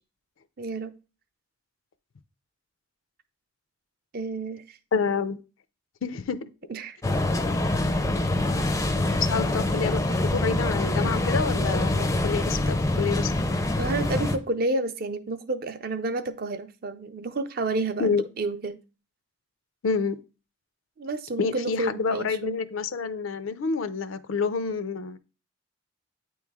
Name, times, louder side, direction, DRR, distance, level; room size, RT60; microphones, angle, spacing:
voice 1, 0.6-1.0 4.1-4.8 6.7-7.0 7.9-8.1 13.8-18.8 21.0-22.6, right 2 dB, 45° right, 0.5 m, -30 dB
voice 2, 4.9-5.4 6.0-6.4 9.2-13.3 18.0-18.2 19.8-20.2 21.4-25.2, left 5 dB, 80° left, 0.5 m, -28 dB
sound 1, 7.0-14.4, left 2 dB, 15° left, 0.4 m, -25 dB
8.8 x 3.1 x 3.5 m
head